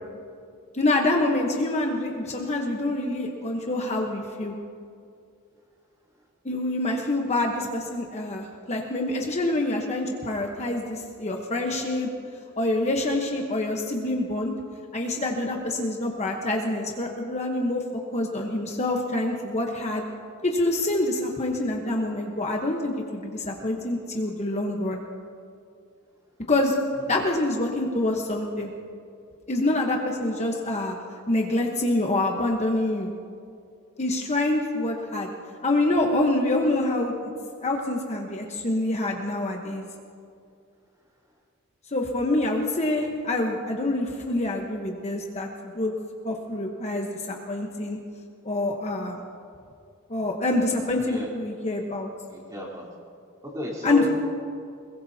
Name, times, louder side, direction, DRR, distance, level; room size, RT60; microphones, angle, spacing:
voice 1, 0.7-4.5 6.4-12.1 12.6-14.5 14.9-17.8 18.1-20.0 20.4-25.0 26.5-26.7 27.1-28.7 29.5-31.0 31.3-33.1 34.0-35.3 35.6-37.1 37.6-39.9 41.9-45.9 46.2-48.0 48.4-49.2 50.1-52.1 53.8-54.0, left 2 dB, 30° left, 1 dB, 1.1 m, -26 dB
voice 2, 52.3-52.9 53.4-54.1, left 2 dB, 15° right, -4 dB, 3.6 m, -32 dB
22.0 x 21.5 x 2.8 m, 2.4 s
head